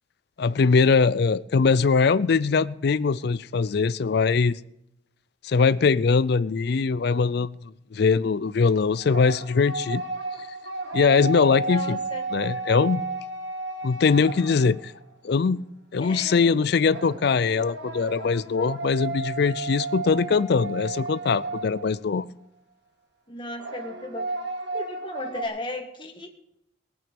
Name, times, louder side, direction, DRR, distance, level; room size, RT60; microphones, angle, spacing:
voice 1, 0.4-4.6 5.4-7.6 7.9-10.0 10.9-12.0 12.3-13.0 13.8-14.9 15.2-15.6 15.9-22.3, left 5 dB, 55° left, 0.4 m, -22 dB
sound 1, 9.0-15.0 16.9-22.2 23.5-25.4, right 3 dB, 65° right, 1.6 m, -33 dB
voice 2, 11.6-12.2 16.0-16.5 23.3-24.3 24.7-26.3, left 2 dB, 25° left, 1.6 m, -35 dB
19.0 x 8.9 x 5.3 m
head